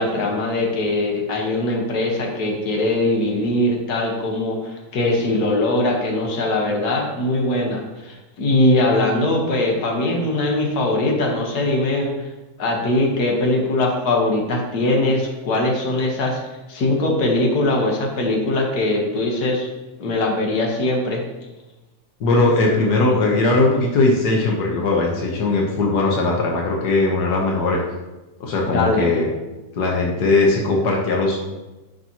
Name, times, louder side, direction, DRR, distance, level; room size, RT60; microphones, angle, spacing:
voice 1, 0.0-12.1 12.6-16.4 16.7-19.7 20.0-21.2 28.7-29.1, left 2 dB, 55° left, 0 dB, 1.1 m, -21 dB
voice 2, 22.2-27.8 28.4-29.3 29.7-31.4, left 2 dB, 80° left, -1 dB, 0.9 m, -19 dB
11.5 x 5.5 x 2.9 m, 1.1 s
omnidirectional pair, 3.4 m